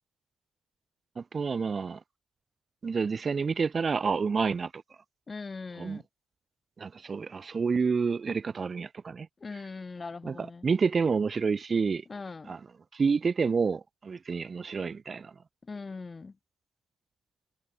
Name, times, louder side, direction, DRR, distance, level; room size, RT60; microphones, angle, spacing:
voice 1, 1.2-2.0 2.8-4.7 5.8-6.0 6.8-9.3 10.2-12.0 12.5-12.6 12.9-15.3, right 5 dB, 35° right, 1.2 m, -29 dB
voice 2, 5.3-6.0 9.4-10.7 12.1-12.6 15.6-16.4, left 4 dB, 30° left, 3.3 m, -40 dB
cardioid pair, 90°, 0 cm